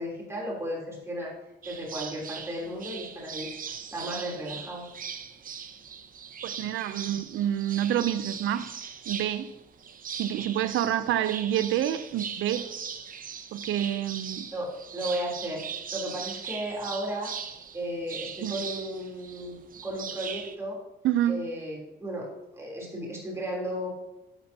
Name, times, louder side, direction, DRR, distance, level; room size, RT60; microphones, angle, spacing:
voice 1, 0.0-1.3 1.6-4.9 14.5-15.6 15.9-17.3 17.7-19.5 19.8-20.8 21.3-22.3 22.5-23.9, equal, 15° right, 3.3 m, -34 dB
sound 1, 1.6-20.5, right 7 dB, 45° right, 0.8 m, -40 dB
voice 2, 6.4-8.7 9.1-9.5 10.1-12.7 13.5-14.5 18.4-18.7 21.0-21.4, right 11 dB, 80° right, 0.6 m, -28 dB
11.5 x 7.0 x 2.8 m
cardioid pair, 90°, 20 cm